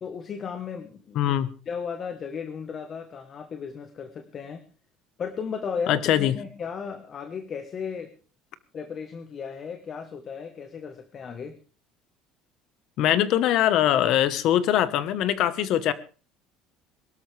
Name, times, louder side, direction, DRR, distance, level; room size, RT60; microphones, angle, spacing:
voice 1, 0.0-1.3 1.7-4.6 5.2-8.1 8.7-11.5, left 6 dB, 30° left, 8 dB, 1.3 m, -35 dB
voice 2, 1.1-1.5 5.9-6.4 13.0-15.9, left 11 dB, 50° left, 14 dB, 1.3 m, -22 dB
22.5 x 13.0 x 3.5 m, 0.36 s
cardioid pair, 155°, 0 cm